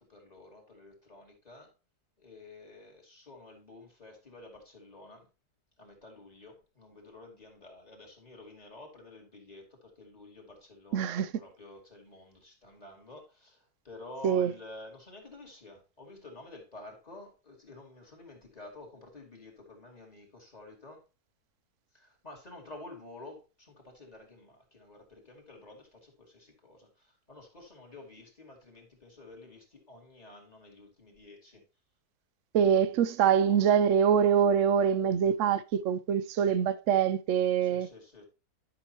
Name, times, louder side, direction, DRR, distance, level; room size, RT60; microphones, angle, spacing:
voice 1, 0.0-1.7 2.2-5.3 5.8-21.0 21.9-31.6 37.6-38.2, left 2 dB, 25° left, 2.4 m, -50 dB
voice 2, 10.9-11.3 14.2-14.5 32.5-37.9, right 8 dB, 80° right, 0.6 m, -24 dB
11.0 x 6.1 x 2.9 m
omnidirectional pair, 1.9 m